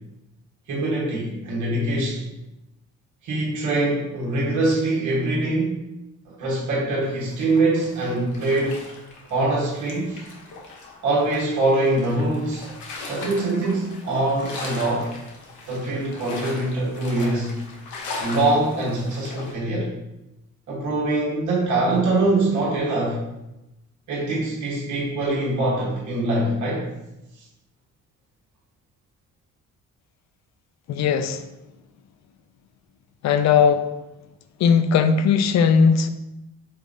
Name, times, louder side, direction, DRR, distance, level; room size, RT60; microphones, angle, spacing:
voice 1, 0.7-2.3 3.2-5.8 6.2-8.8 9.3-10.3 11.0-12.7 13.0-15.1 15.7-17.6 18.2-19.9 20.7-23.2 24.1-26.9 27.4-27.5, right 2 dB, 75° right, -5 dB, 1.3 m, -23 dB
sound 1, 7.0-19.5, left 3 dB, 85° left, 1.0 m, -39 dB
voice 2, 30.9-31.4 33.2-33.9 34.6-36.1, left 6 dB, 60° left, 9 dB, 0.5 m, -18 dB
5.4 x 3.6 x 2.6 m, 0.94 s
cardioid pair, 90°, 30 cm